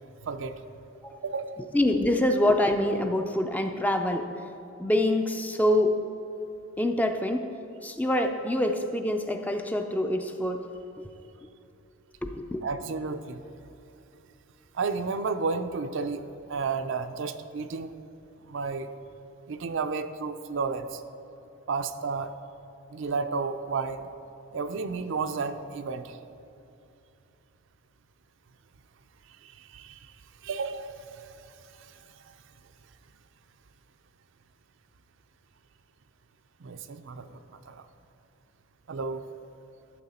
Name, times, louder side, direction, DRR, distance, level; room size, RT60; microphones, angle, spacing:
voice 1, 0.2-0.5 1.2-1.6 12.6-13.4 14.7-16.2 16.5-17.9 18.4-18.9 19.5-21.0 21.7-22.3 22.9-24.1 24.5-26.2 29.4-30.1 30.4-31.5 31.8-32.3 36.6-37.8 38.9-39.2, right 4 dB, 60° right, 9 dB, 0.5 m, -32 dB
voice 2, 1.7-4.3 4.8-6.0 6.8-7.5 7.8-10.7 12.2-12.6, left 1 dB, 5° left, 5 dB, 0.4 m, -25 dB
13.0 x 7.2 x 4.2 m, 2.8 s
head